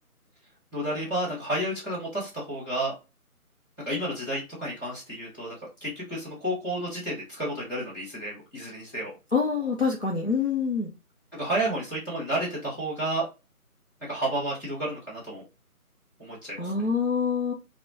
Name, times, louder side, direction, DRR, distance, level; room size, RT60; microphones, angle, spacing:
voice 1, 0.7-2.9 3.8-5.5 5.8-9.1 11.3-13.2 14.1-15.4 16.2-16.6, right 1 dB, 15° left, -11 dB, 1.1 m, -31 dB
voice 2, 9.3-10.9 16.6-17.5, left 5 dB, 45° left, -2 dB, 0.6 m, -26 dB
3.4 x 2.1 x 2.8 m, 0.28 s
figure-of-eight pair, 160°, 44 cm